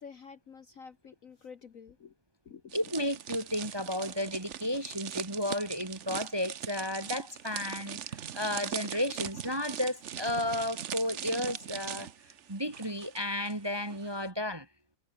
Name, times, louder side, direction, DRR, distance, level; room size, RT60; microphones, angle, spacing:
voice 1, 0.0-2.1 2.4-2.8, left 6 dB, 50° left, 1.3 m, -49 dB
voice 2, 2.7-12.1 12.5-14.7, left 1 dB, 15° right, 1.4 m, -33 dB
sound 1, 2.7-13.5 13.8-14.1, right 9 dB, 55° right, 0.8 m, -40 dB
omnidirectional pair, 2.2 m